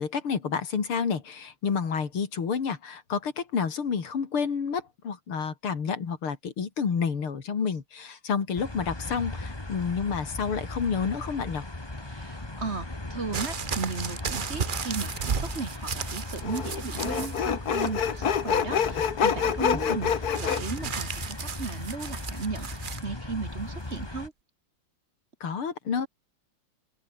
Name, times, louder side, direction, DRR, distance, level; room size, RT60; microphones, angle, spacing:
voice 1, 0.0-11.6 19.7-19.8 25.4-26.1, left 6 dB, 90° left, 3.5 m, -29 dB
sound 1, 8.6-24.3, left 2 dB, 10° left, 1.8 m, -38 dB
voice 2, 12.0-24.3, right 4 dB, 35° right, 1.7 m, -36 dB
sound 2, 13.3-17.4 17.7-18.3 20.4-23.0 23.9-24.0, right 6 dB, 55° right, 0.5 m, -34 dB
Sawing, 15.2-15.3 16.4-20.6, left 8 dB, 50° left, 1.7 m, -27 dB
open air
omnidirectional pair, 2.3 m